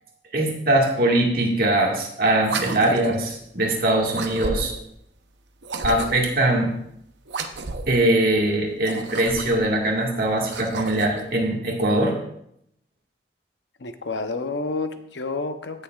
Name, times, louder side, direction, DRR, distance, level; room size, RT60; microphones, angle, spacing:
voice 1, 0.3-4.7 5.8-6.7 7.9-12.2, right 1 dB, 55° right, 0 dB, 1.9 m, -21 dB
sound 1, 2.4-3.3 4.1-4.9 5.6-6.4 7.3-8.0 8.7-9.7 10.3-11.2, right 3 dB, 80° right, 0.7 m, -32 dB
voice 2, 13.8-15.8, left 3 dB, 80° left, 8 dB, 0.8 m, -29 dB
16.5 x 6.7 x 2.4 m, 0.73 s
head